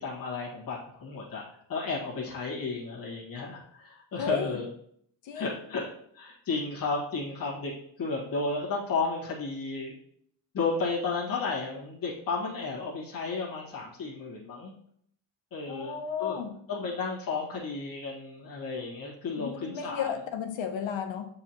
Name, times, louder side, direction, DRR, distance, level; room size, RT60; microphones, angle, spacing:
voice 1, 0.0-4.6 5.3-5.9 6.1-7.7 8.0-10.0 10.5-14.7 15.5-16.4 16.7-20.1, left 4 dB, 50° left, -6 dB, 1.7 m, -33 dB
voice 2, 4.2-4.6 5.2-5.6 15.7-16.5 19.4-21.3, left 7 dB, 85° left, 6 dB, 0.9 m, -33 dB
7.4 x 4.7 x 2.9 m, 0.67 s
wide cardioid pair, 160°, 45 cm